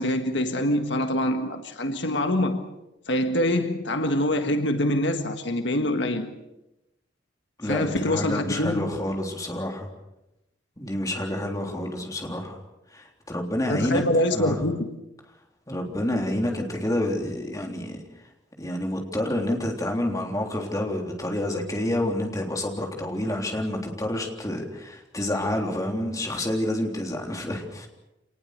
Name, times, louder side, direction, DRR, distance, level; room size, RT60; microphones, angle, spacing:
voice 1, 0.0-2.7 3.1-6.3 7.6-8.9 13.6-15.0, left 1 dB, 70° left, 1.6 m, -25 dB
voice 2, 7.6-9.9 10.8-12.6 12.9-14.6 15.7-18.0 18.6-27.9, left 1 dB, 20° left, 3.5 m, -28 dB
26.5 x 19.5 x 6.7 m
head